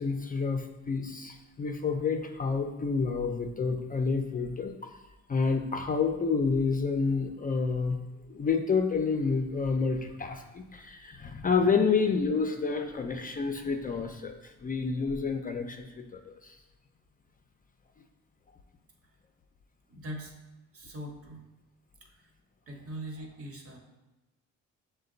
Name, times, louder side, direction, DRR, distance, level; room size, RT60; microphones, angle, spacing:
voice 1, 0.0-4.7 5.3-8.0 8.3-16.6, left 5 dB, 30° left, 5 dB, 0.4 m, -29 dB
voice 2, 19.9-20.3 20.7-21.5 22.0-22.3 22.7-23.8, right 1 dB, 50° right, 1 dB, 1.1 m, -41 dB
6.4 x 2.2 x 3.8 m, 1.1 s
cardioid pair, 90°, 30 cm